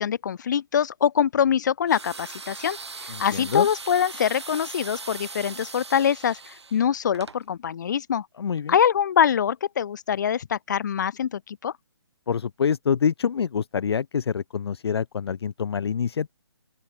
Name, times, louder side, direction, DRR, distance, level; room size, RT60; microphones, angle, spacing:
voice 1, 0.0-2.8 3.2-8.3 8.7-11.7, left 8 dB, 45° left, 1.3 m, -24 dB
sound 1, 1.9-7.4, right 4 dB, 85° right, 4.9 m, -39 dB
voice 2, 3.1-3.7 8.4-8.8 12.3-16.3, left 7 dB, 70° left, 0.5 m, -26 dB
open air
hypercardioid pair, 160°, 14 cm